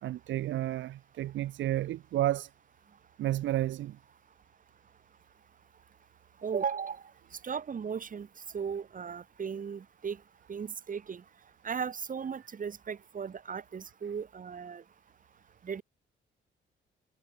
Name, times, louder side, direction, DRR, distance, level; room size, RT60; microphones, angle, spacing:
voice 1, 0.0-2.5 3.2-4.0, right 14 dB, 75° right, 0.8 m, -31 dB
voice 2, 6.4-7.0 7.3-8.3 8.5-10.2 10.5-11.2 11.6-14.8 15.6-15.8, right 6 dB, 40° right, 2.5 m, -36 dB
cardioid pair, 90°, 20 cm